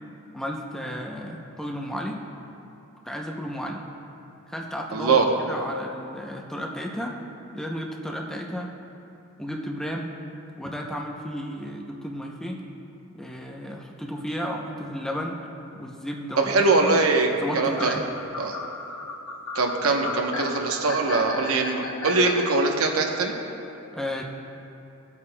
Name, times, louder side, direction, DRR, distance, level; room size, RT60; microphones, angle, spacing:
voice 1, 0.3-2.2 3.0-3.8 4.5-7.2 7.5-8.7 9.4-10.2 10.6-12.6 13.1-15.4 15.7-17.0 17.4-18.1 23.9-24.2, equal, ahead, 0 dB, 0.5 m, -33 dB
voice 2, 4.9-5.3 16.5-17.3 17.5-18.0 18.4-18.6 19.5-23.3, right 3 dB, 75° right, 2 dB, 0.9 m, -22 dB
sound 1, 17.8-22.5, left 3 dB, 65° left, 0.8 m, -34 dB
19.0 x 8.4 x 2.2 m, 2.9 s
head